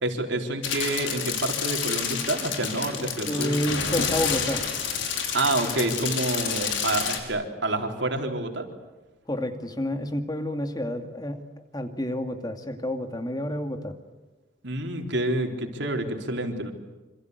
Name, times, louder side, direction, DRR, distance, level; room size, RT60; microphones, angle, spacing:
voice 1, 0.0-3.6 5.3-8.7 14.6-16.7, right 2 dB, 60° right, 4 dB, 4.1 m, -28 dB
sound 1, 0.6-7.2, left 6 dB, 65° left, 5.3 m, -29 dB
voice 2, 3.0-4.6 9.3-11.4 11.7-13.9, left 1 dB, 20° left, 7 dB, 2.5 m, -29 dB
27.0 x 27.0 x 8.2 m, 1.2 s
head